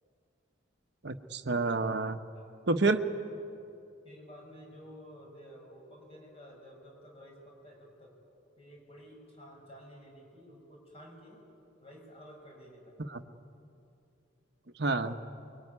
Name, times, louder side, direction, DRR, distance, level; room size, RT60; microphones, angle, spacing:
voice 1, 1.0-2.2 2.7-3.0 13.1-13.2 14.8-15.2, right 3 dB, 55° right, 7 dB, 1.0 m, -28 dB
voice 2, 4.0-8.2 8.6-11.4 11.8-13.0, equal, 30° left, 0 dB, 6.3 m, -52 dB
24.5 x 22.5 x 9.7 m, 2.7 s
head